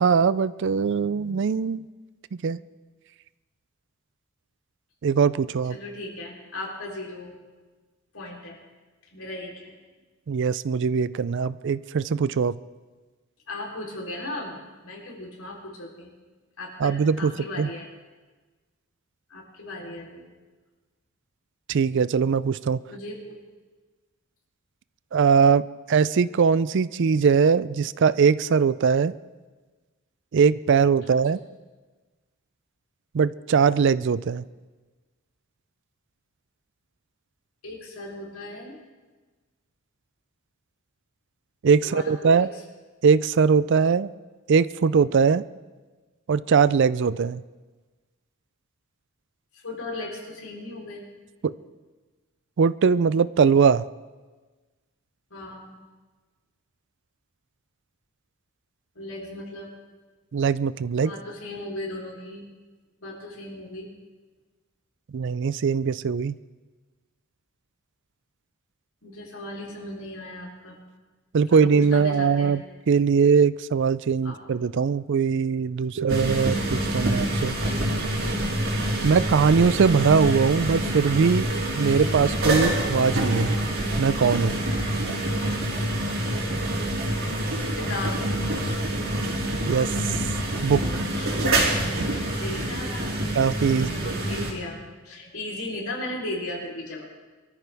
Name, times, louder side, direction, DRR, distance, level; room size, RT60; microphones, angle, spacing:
voice 1, 0.0-1.8 2.4-2.6 5.0-5.8 10.3-12.6 16.8-17.3 17.6-17.7 21.7-22.8 25.1-29.1 30.3-31.4 33.1-34.4 41.6-42.5 43.0-44.1 44.5-45.4 46.3-47.4 51.4-51.5 52.6-53.9 60.3-61.1 65.1-66.4 71.3-77.5 79.0-81.5 81.8-83.6 84.0-84.6 89.6-89.9 90.6-91.1 92.0-92.1 93.3-94.2, right 6 dB, 60° right, 17 dB, 0.4 m, -21 dB
voice 2, 5.7-7.4 8.1-8.6 9.1-9.7 13.5-16.1 16.6-17.9 19.3-20.3 22.9-23.4 31.0-31.1 37.6-38.8 41.8-42.5 49.5-51.1 55.3-55.8 59.0-59.7 61.0-62.5 63.0-63.9 69.0-70.8 71.5-72.6 74.2-74.4 87.8-88.3 91.1-91.6 92.0-93.3 93.7-97.0, left 1 dB, 85° left, -1 dB, 3.6 m, -37 dB
sound 1, 76.1-94.5, right 1 dB, 80° right, 3.8 m, -26 dB
23.5 x 13.5 x 3.5 m, 1.3 s
head